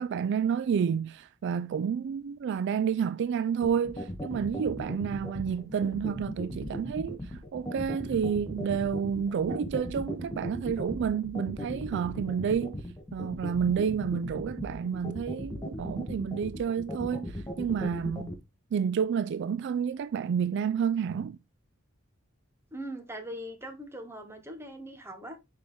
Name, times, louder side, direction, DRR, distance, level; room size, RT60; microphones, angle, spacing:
voice 1, 0.0-12.8 13.1-18.3 18.7-21.4, right 7 dB, 55° right, 0.3 m, -30 dB
sound 1, 3.6-18.3, left 1 dB, 20° left, 1.3 m, -37 dB
voice 2, 22.7-25.4, right 1 dB, 10° right, 1.2 m, -41 dB
6.1 x 4.5 x 3.5 m
head